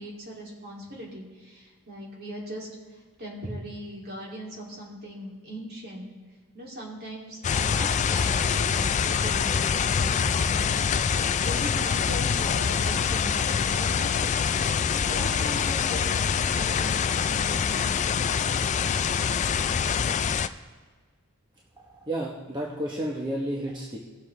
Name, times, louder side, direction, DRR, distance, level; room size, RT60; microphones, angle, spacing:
voice 1, 0.0-2.7 3.2-6.1 6.5-10.9 11.2-14.1 15.0-18.0 19.3-19.6, equal, 45° right, -3 dB, 2.7 m, -39 dB
sound 1, 7.4-20.5, left 6 dB, 35° left, 0.3 m, -25 dB
voice 2, 22.1-24.0, right 1 dB, 20° right, -3 dB, 1.0 m, -31 dB
18.0 x 7.2 x 3.2 m, 1.5 s
head